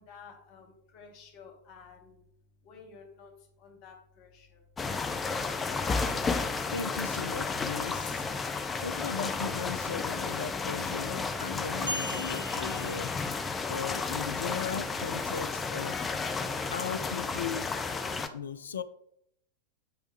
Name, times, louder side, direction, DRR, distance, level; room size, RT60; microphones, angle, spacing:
voice 1, 0.0-2.2 2.6-4.6, left 5 dB, 45° left, 1.5 m, -52 dB
sound 1, 4.8-18.3, left 4 dB, 15° left, 0.5 m, -32 dB
voice 2, 6.7-8.3 8.8-13.1 13.7-16.0 16.7-17.7 18.3-18.8, left 6 dB, 70° left, 0.4 m, -37 dB
sound 2, 11.9-13.7, equal, 70° right, 1.5 m, -39 dB
9.2 x 3.2 x 3.1 m
figure-of-eight pair, 90°, 0 cm